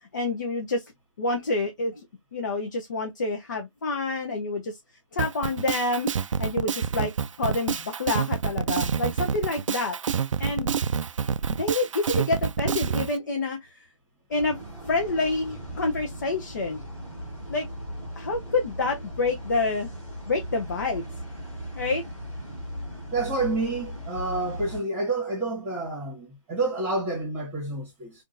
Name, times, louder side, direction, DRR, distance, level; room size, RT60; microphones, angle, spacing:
voice 1, 0.1-0.8 1.2-2.0 2.3-4.8 5.1-6.1 6.4-7.1 7.4-10.0 10.4-10.7 11.6-13.8 14.3-14.6 14.8-16.8 17.5-17.7 18.2-19.9 20.3-21.1 21.8-22.0, left 3 dB, 35° left, 0.6 m, -27 dB
Drum kit, 5.2-13.1, right 7 dB, 75° right, 0.4 m, -27 dB
sound 1, 14.3-24.8, equal, 10° left, 1.5 m, -38 dB
voice 2, 23.1-28.1, right 2 dB, 10° right, 1.2 m, -29 dB
3.6 x 2.4 x 2.5 m
hypercardioid pair, 165°, 17 cm